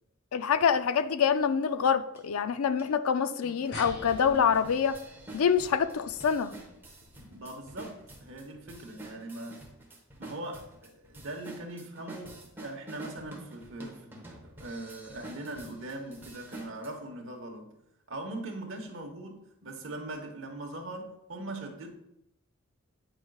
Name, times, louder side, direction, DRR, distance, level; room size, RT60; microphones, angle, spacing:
voice 1, 0.3-5.0 5.3-6.5, left 7 dB, 85° left, 0.4 m, -26 dB
sound 1, 2.2-2.3 2.8-2.9 3.4-16.9, right 2 dB, 10° right, 1.1 m, -48 dB
sound 2, 3.7-8.6, left 2 dB, 55° left, 0.8 m, -47 dB
voice 2, 7.2-9.6 10.2-17.8 18.1-21.9, right 2 dB, 60° right, 1.1 m, -41 dB
9.0 x 5.0 x 2.3 m
head